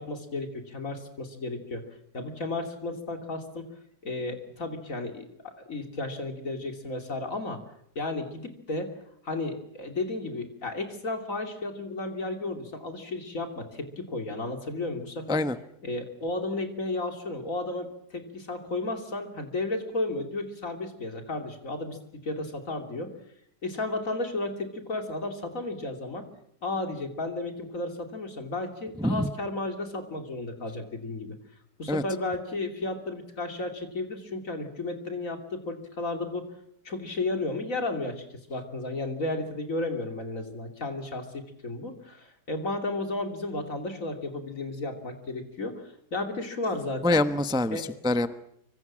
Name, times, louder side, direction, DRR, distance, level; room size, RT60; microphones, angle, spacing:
voice 1, 0.0-1.8 2.1-3.7 4.0-7.6 7.9-8.9 9.2-15.4 15.8-22.0 22.2-23.1 23.6-26.2 26.6-31.4 31.8-36.5 36.8-41.3 41.6-47.2 47.7-47.8, left 2 dB, 50° left, 5 dB, 3.3 m, -33 dB
voice 2, 47.0-48.3, left 2 dB, 5° right, 11 dB, 0.5 m, -25 dB
25.0 x 24.5 x 7.5 m, 0.73 s
omnidirectional pair, 1.9 m